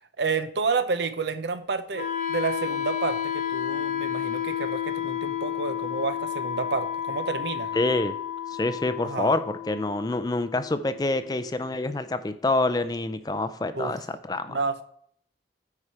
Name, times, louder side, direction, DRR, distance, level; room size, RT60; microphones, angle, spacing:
voice 1, 0.2-7.8 9.0-9.4 13.7-13.9 14.5-14.8, right 4 dB, 75° right, 11 dB, 0.7 m, -30 dB
Wind instrument woodwind instrument, 1.9-11.9, left 9 dB, 45° left, 0.9 m, -32 dB
voice 2, 7.7-8.2 8.5-14.6, left 2 dB, 20° left, 11 dB, 0.4 m, -27 dB
9.7 x 4.8 x 4.3 m, 0.64 s
head